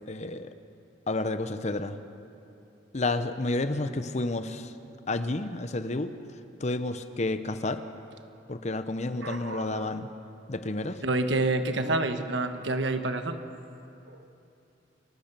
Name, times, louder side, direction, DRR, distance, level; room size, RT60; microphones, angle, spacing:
voice 1, 0.1-0.5 1.1-2.0 2.9-4.7 5.1-6.1 6.6-7.8 8.5-10.1 10.5-11.0, left 2 dB, 35° left, 11 dB, 0.8 m, -30 dB
voice 2, 9.2-9.9 11.0-13.4 14.1-14.2, right 2 dB, 70° right, 8 dB, 1.3 m, -28 dB
29.0 x 14.5 x 6.8 m, 2.7 s
head